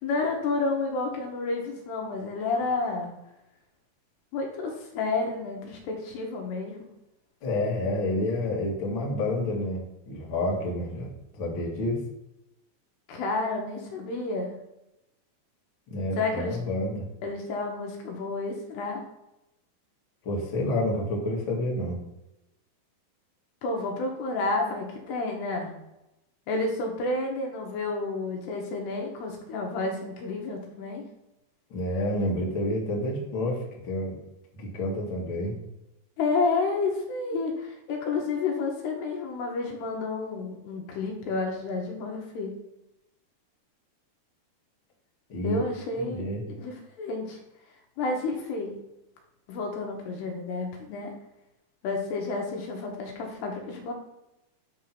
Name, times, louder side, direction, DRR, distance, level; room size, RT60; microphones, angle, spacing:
voice 1, 0.0-3.1 4.3-6.8 13.1-14.5 16.2-16.6 17.2-19.0 23.6-25.7 26.5-31.0 36.2-42.5 45.4-46.3 46.5-47.4 48.0-48.8 49.5-51.1 51.8-53.9, left 3 dB, 75° left, 1 dB, 3.0 m, -30 dB
voice 2, 7.4-11.1 11.4-12.0 15.9-17.0 20.2-22.0 31.7-34.2 34.5-35.6 45.3-45.6 46.0-46.4, left 1 dB, 45° left, -3 dB, 1.8 m, -29 dB
9.9 x 3.7 x 5.9 m, 0.89 s
omnidirectional pair, 5.1 m